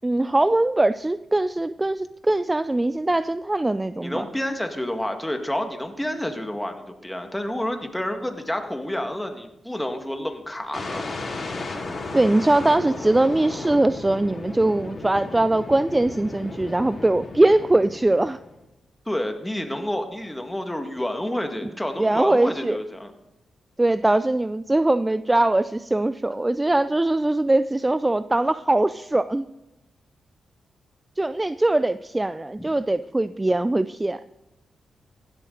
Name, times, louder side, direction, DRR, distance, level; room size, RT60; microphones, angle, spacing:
voice 1, 0.0-4.2 12.1-18.4 22.0-22.8 23.8-29.5 31.2-34.2, right 2 dB, 20° right, 13 dB, 0.4 m, -21 dB
voice 2, 4.0-11.0 19.1-23.1, left 1 dB, 10° left, 5 dB, 1.8 m, -29 dB
sound 1, 10.7-18.6, left 3 dB, 45° left, 4.0 m, -35 dB
15.5 x 12.0 x 3.9 m, 0.94 s
cardioid pair, 70°, 0 cm